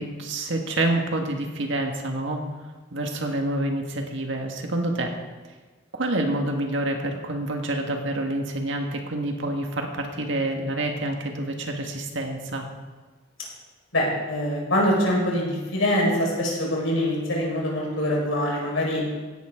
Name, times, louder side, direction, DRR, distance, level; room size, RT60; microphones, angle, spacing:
voice 1, 0.0-2.4 2.9-5.1 5.9-12.7, right 1 dB, 70° right, 3 dB, 1.8 m, -27 dB
voice 2, 13.9-19.0, left 1 dB, 85° left, -3 dB, 5.0 m, -24 dB
16.5 x 11.0 x 3.8 m, 1.3 s
head